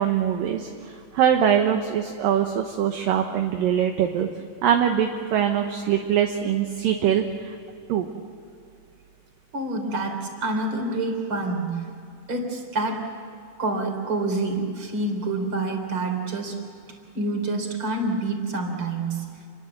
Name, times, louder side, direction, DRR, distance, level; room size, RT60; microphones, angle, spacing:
voice 1, 0.0-4.3 4.6-7.6 7.9-8.1, right 9 dB, 65° right, 4 dB, 2.6 m, -23 dB
voice 2, 9.5-11.8 12.3-13.1 13.6-16.6 17.1-19.3, right 2 dB, 30° right, 4 dB, 4.1 m, -27 dB
28.0 x 22.5 x 7.9 m, 2.5 s
omnidirectional pair, 4.7 m